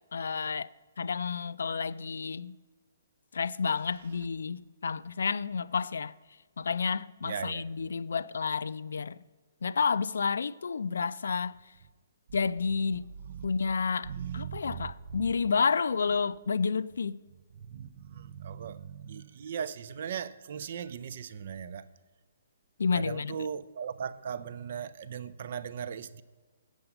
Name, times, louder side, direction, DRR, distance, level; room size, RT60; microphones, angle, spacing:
voice 1, 0.1-0.7 1.0-2.6 3.3-6.1 6.6-9.2 9.6-11.6 12.3-13.1 13.4-17.2 22.8-23.5, left 5 dB, 75° left, 0.3 m, -30 dB
voice 2, 7.2-7.6 13.3-13.5 14.1-15.3 17.6-21.8 22.9-26.2, right 7 dB, 40° right, 0.4 m, -38 dB
7.7 x 7.2 x 6.9 m
hypercardioid pair, 175°, 0 cm